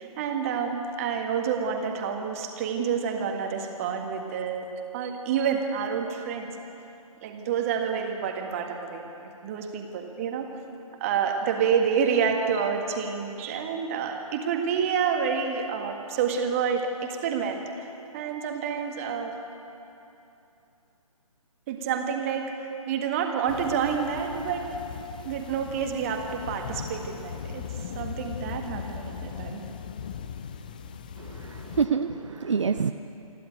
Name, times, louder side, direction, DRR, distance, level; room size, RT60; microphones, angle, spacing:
voice 1, 0.0-6.5 7.2-9.1 9.4-10.5 11.0-17.9 18.1-19.4 21.7-24.8 25.2-27.6 28.0-29.6, right 7 dB, 25° right, 3 dB, 1.7 m, -28 dB
sound 1, 23.5-31.9, left 7 dB, 15° left, 0.4 m, -39 dB
voice 2, 31.2-32.9, right 6 dB, 55° right, 8 dB, 0.7 m, -27 dB
27.5 x 11.0 x 9.2 m, 2.9 s
figure-of-eight pair, 140°, 19 cm